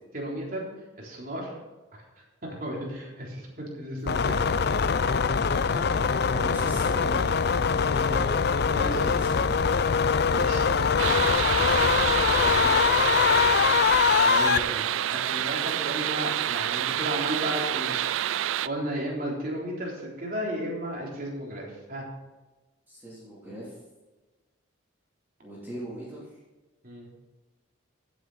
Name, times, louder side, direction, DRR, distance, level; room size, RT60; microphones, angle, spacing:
voice 1, 0.1-0.7 1.0-1.5 2.6-4.6 7.9-8.3 8.6-9.3 10.3-10.7 14.1-18.0 18.3-22.0 26.8-27.1, equal, 45° right, -2 dB, 3.8 m, -34 dB
sound 1, 4.1-14.6, left 6 dB, 55° left, 0.5 m, -23 dB
voice 2, 5.6-7.3 8.8-9.8 11.8-13.0 22.9-23.8 25.4-26.3, right 1 dB, 10° right, -8 dB, 3.2 m, -39 dB
sound 2, 11.0-18.7, right 11 dB, 75° right, 0.4 m, -28 dB
15.5 x 8.3 x 4.3 m, 1.2 s
head